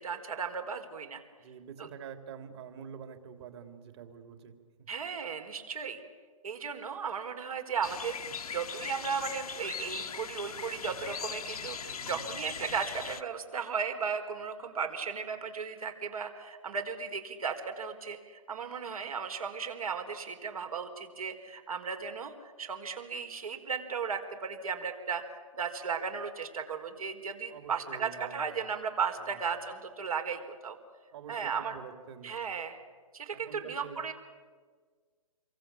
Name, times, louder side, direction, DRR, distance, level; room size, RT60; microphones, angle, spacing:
voice 1, 0.0-1.2 1.8-1.9 4.9-6.0 6.4-25.2 25.5-30.8 31.3-31.8 32.2-32.8 33.1-34.1, right 6 dB, 70° right, 5 dB, 4.5 m, -35 dB
voice 2, 1.4-4.6 11.8-12.3 27.5-28.5 29.3-29.4 31.1-32.4 33.3-34.0, right 7 dB, 45° right, 7 dB, 3.6 m, -47 dB
sound 1, 7.8-13.2, left 6 dB, 75° left, 1.3 m, -40 dB
28.5 x 23.5 x 8.7 m, 1.6 s
hypercardioid pair, 145°, 19 cm